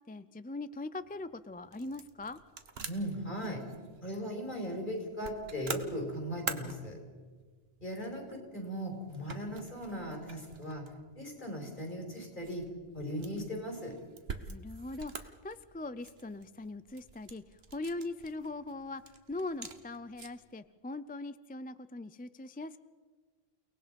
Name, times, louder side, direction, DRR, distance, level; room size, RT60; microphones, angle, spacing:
voice 1, 0.1-2.4 14.3-22.8, left 2 dB, 15° left, 13 dB, 0.3 m, -41 dB
sound 1, 1.0-20.5, right 5 dB, 75° right, 1.5 m, -47 dB
voice 2, 2.8-3.6 4.0-7.0 7.8-12.7 12.9-13.9, equal, 50° left, 1 dB, 5.0 m, -38 dB
30.0 x 18.5 x 5.3 m, 1.5 s
omnidirectional pair, 1.1 m